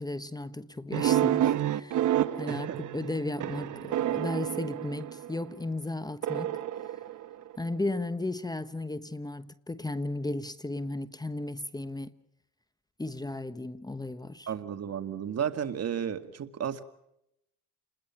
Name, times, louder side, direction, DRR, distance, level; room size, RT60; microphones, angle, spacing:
voice 1, 0.0-6.6 7.6-12.1 13.0-14.5, left 2 dB, 15° left, 1.1 m, -35 dB
sound 1, 0.9-5.5 6.2-7.8, right 12 dB, 75° right, 1.2 m, -29 dB
voice 2, 2.5-2.8 14.5-16.8, right 8 dB, 55° right, 2.2 m, -33 dB
30.0 x 21.0 x 5.9 m
cardioid pair, 90°, 30 cm